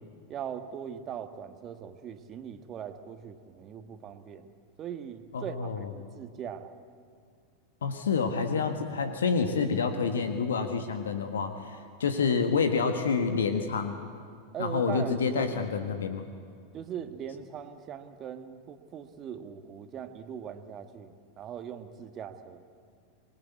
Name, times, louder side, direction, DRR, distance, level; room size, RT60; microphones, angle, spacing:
voice 1, 0.3-4.5 4.8-6.7 14.5-15.9 16.7-22.6, right 8 dB, 35° right, 8 dB, 1.7 m, -40 dB
voice 2, 5.3-5.9 7.8-11.5 12.0-14.0 14.6-16.3, left 5 dB, 75° left, 7 dB, 1.6 m, -28 dB
26.0 x 20.0 x 8.3 m, 2.2 s
figure-of-eight pair, 90°, 0 cm